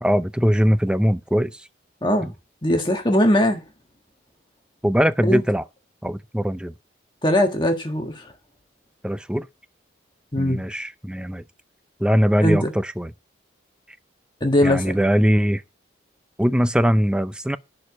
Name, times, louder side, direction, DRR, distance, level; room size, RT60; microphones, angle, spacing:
voice 1, 0.0-1.7 2.2-2.3 4.8-5.6 6.0-6.7 9.0-9.5 10.4-11.4 12.0-13.1 14.6-15.6 16.4-17.6, equal, 5° right, 0.5 m, -21 dB
voice 2, 2.6-3.6 5.2-5.4 7.2-8.3 10.3-10.6 12.4-12.7 14.4-14.9, left 1 dB, 25° left, 1.6 m, -20 dB
11.0 x 4.9 x 8.3 m
head